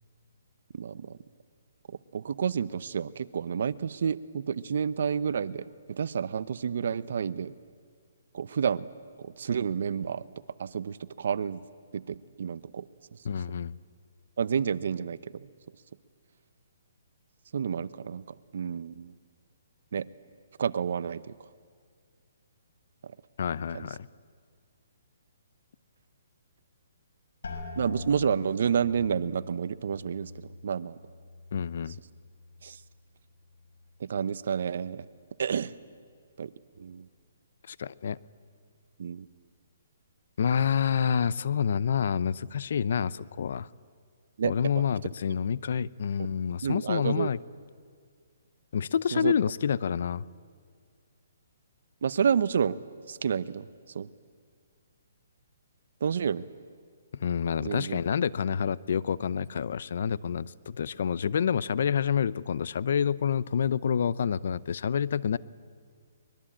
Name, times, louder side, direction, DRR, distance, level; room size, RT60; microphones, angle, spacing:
voice 1, 0.7-1.1 2.1-7.5 8.3-8.9 9.2-10.2 10.6-11.6 11.9-12.9 14.4-15.5 17.5-18.2 18.5-19.2 19.9-20.1 20.6-21.3 23.7-23.9 27.8-31.0 32.6-32.8 34.0-35.0 35.4-35.7 36.4-36.5 36.8-37.1 39.0-39.3 44.4-44.5 46.6-47.3 49.1-49.3 52.0-52.8 53.1-53.7 53.9-54.1 56.0-56.5 57.6-58.0, right 7 dB, 65° right, 16 dB, 0.8 m, -29 dB
voice 2, 13.2-13.7 23.4-24.1 31.5-32.0 37.7-38.2 40.4-43.7 44.4-47.4 48.7-50.2 57.1-65.4, left 7 dB, 60° left, 19 dB, 0.6 m, -28 dB
sound 1, 27.4-33.1 33.4-34.1 34.6-35.0, left 3 dB, 80° left, 5.6 m, -44 dB
24.0 x 21.5 x 8.7 m, 2.1 s
hypercardioid pair, 155°, 0 cm